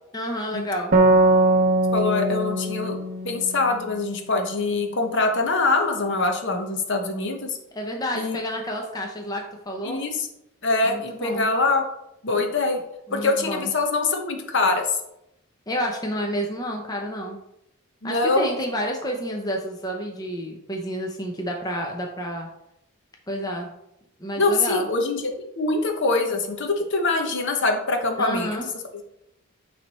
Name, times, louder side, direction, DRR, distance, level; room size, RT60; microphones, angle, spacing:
voice 1, 0.1-0.9 7.7-10.0 10.9-11.5 13.1-13.7 15.7-17.4 18.0-22.5 23.3-23.7 24.2-24.9 28.2-28.7, equal, 15° left, 1 dB, 0.6 m, -29 dB
sound 1, 0.9-4.4, right 2 dB, 40° right, 0.7 m, -21 dB
voice 2, 1.9-3.0 3.2-7.6 8.1-8.4 9.8-10.3 10.6-11.8 12.2-12.8 13.1-14.9 18.0-18.5 24.4-25.2 25.6-28.5, left 3 dB, 55° left, 4 dB, 0.9 m, -23 dB
8.9 x 3.3 x 4.1 m, 0.83 s
head